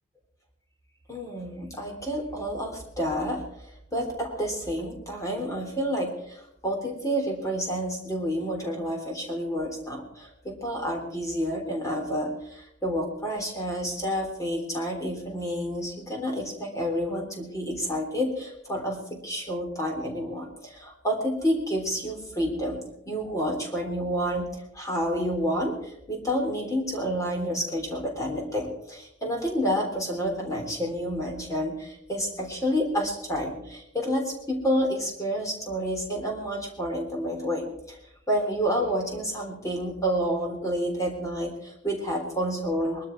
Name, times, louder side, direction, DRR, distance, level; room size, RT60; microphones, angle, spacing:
voice 1, 1.1-3.4 3.9-22.8 23.1-38.0 38.3-43.1, equal, 15° left, 1 dB, 3.5 m, -29 dB
21.5 x 13.0 x 4.7 m, 0.80 s
head